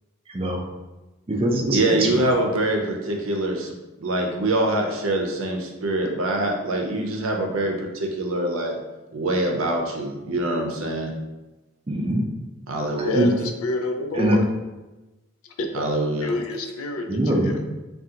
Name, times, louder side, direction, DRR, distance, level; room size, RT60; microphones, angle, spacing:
voice 1, 0.3-0.6 1.3-2.2 11.9-12.2 13.0-13.3 14.1-14.4 17.1-17.6, right 1 dB, 25° right, 1 dB, 0.4 m, -23 dB
voice 2, 1.7-3.7 4.0-8.8 9.1-11.1 12.7-13.2 15.7-16.3, right 1 dB, 75° right, 2 dB, 0.6 m, -24 dB
voice 3, 13.0-14.4 15.6-15.9 16.2-17.6, left 2 dB, 90° left, 4 dB, 0.4 m, -28 dB
3.6 x 2.3 x 2.8 m, 1.1 s
head